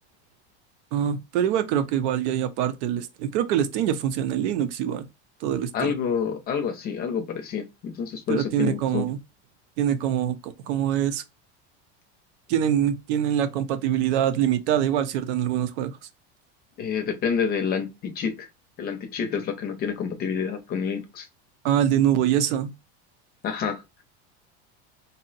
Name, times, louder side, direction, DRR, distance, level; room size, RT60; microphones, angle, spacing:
voice 1, 0.9-5.1 5.4-6.0 8.3-9.2 9.8-11.2 12.5-16.0 21.6-22.7, right 10 dB, 80° right, 0.6 m, -24 dB
voice 2, 5.7-9.0 16.8-18.5 18.8-21.3 23.4-23.8, left 6 dB, 30° left, 0.5 m, -28 dB
2.6 x 2.1 x 3.9 m
supercardioid pair, 150°, 33 cm